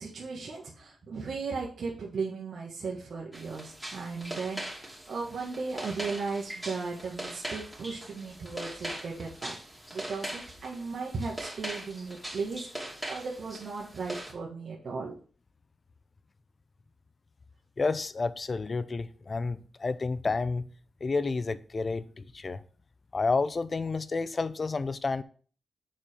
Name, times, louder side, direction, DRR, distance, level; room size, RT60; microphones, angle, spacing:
voice 1, 0.0-9.5 9.9-15.1, right 4 dB, 65° right, 1.5 m, -36 dB
sound 1, 3.3-14.3, right 1 dB, 10° right, 2.7 m, -41 dB
voice 2, 17.8-20.7 21.0-22.6 23.1-25.2, left 4 dB, 45° left, 0.6 m, -30 dB
7.4 x 4.4 x 5.1 m
cardioid pair, 65°, 0 cm